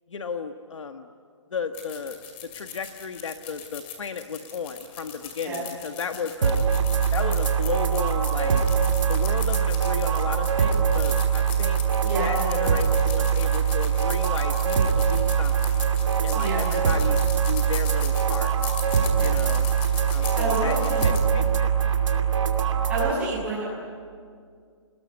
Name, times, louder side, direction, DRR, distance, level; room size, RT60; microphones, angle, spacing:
voice 1, 0.1-1.1 1.5-2.2 2.5-6.6 7.1-8.6 9.1-11.8 12.2-15.7 16.2-17.2 17.4-18.5 19.2-19.7 20.1-21.7 22.1-22.3, left 5 dB, 75° left, 6 dB, 1.5 m, -34 dB
sound 1, 1.7-21.2, left 8 dB, 20° left, 2.4 m, -40 dB
sound 2, 6.4-23.1, right 7 dB, 80° right, 2.7 m, -23 dB
voice 2, 12.0-12.5 16.3-16.7 19.1-19.4 20.3-21.2 22.9-23.6, right 2 dB, 10° right, -6 dB, 6.8 m, -29 dB
29.0 x 20.5 x 9.6 m, 2.1 s
hypercardioid pair, 180°, 16 cm